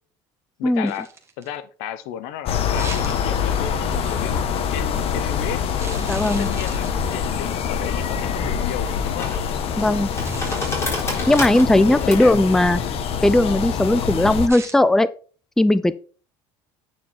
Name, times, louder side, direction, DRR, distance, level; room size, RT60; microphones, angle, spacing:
voice 1, 0.6-1.1 1.4-5.7 6.2-9.4 11.7-12.4 12.8-13.0, left 10 dB, 80° left, 0.8 m, -34 dB
sound 1, 0.9-1.6 2.7-3.6 4.1-4.4 5.8-7.3 8.1-8.3 10.1-11.1 14.5-14.8, right 5 dB, 20° right, 1.4 m, -39 dB
sound 2, 2.5-14.5, left 7 dB, 55° left, 1.2 m, -25 dB
voice 2, 6.1-6.5 9.8-10.1 11.3-12.8 13.2-15.1 15.6-16.0, left 1 dB, 5° left, 0.4 m, -17 dB
sound 3, 8.4-14.6, left 1 dB, 20° left, 4.1 m, -33 dB
9.1 x 4.8 x 4.4 m
supercardioid pair, 105°, 12 cm